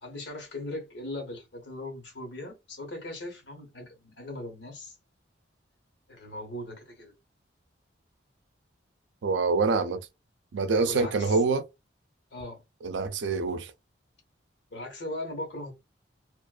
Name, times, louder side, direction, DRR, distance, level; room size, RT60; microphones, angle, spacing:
voice 1, 0.0-4.9 6.1-7.1 10.9-11.4 12.3-12.6 14.7-15.7, left 1 dB, 75° left, 1.1 m, -39 dB
voice 2, 9.2-10.0 10.5-11.6 12.8-13.7, right 4 dB, 75° right, 0.4 m, -25 dB
2.4 x 2.3 x 2.2 m
head